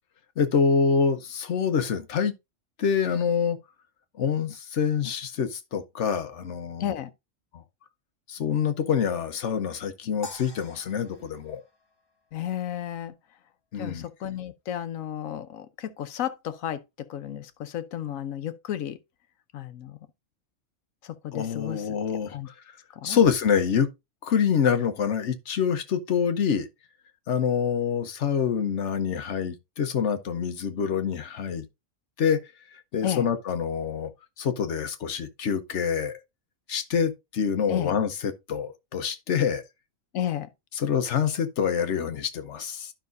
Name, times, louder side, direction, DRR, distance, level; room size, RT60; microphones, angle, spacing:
voice 1, 0.4-2.3 2.8-3.6 4.2-6.9 7.5-7.6 8.3-11.6 13.7-14.0 21.3-22.5 23.0-23.9 24.2-26.7 27.3-31.7 32.2-32.4 32.7-34.1 34.4-36.2 36.7-39.6 40.8-42.9, left 7 dB, 65° left, 1.2 m, -26 dB
sound 1, 10.2-12.6, left 2 dB, 20° left, 1.0 m, -45 dB
voice 2, 12.3-13.1 13.8-19.0 19.5-20.0 21.0-21.8 22.3-22.5 23.0-23.2 33.0-33.3 37.7-37.9 40.1-40.5, left 11 dB, 85° left, 1.2 m, -32 dB
11.5 x 5.6 x 2.6 m
omnidirectional pair, 1.4 m